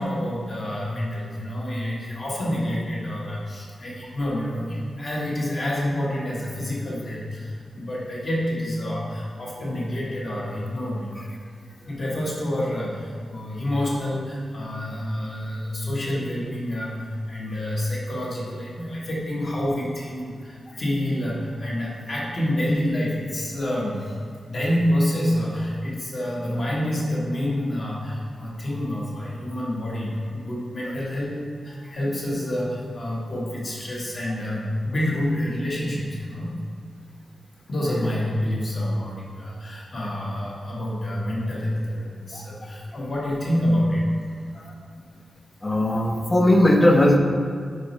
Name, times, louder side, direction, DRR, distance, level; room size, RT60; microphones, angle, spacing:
voice 1, 0.0-11.3 11.9-17.0 17.3-24.2 24.4-31.4 31.6-36.5 37.7-44.0, left 1 dB, 40° left, -5 dB, 1.5 m, -27 dB
voice 2, 45.6-47.2, left 1 dB, 20° left, 2 dB, 0.6 m, -18 dB
5.2 x 4.7 x 4.2 m, 2.1 s
wide cardioid pair, 150°, 0 cm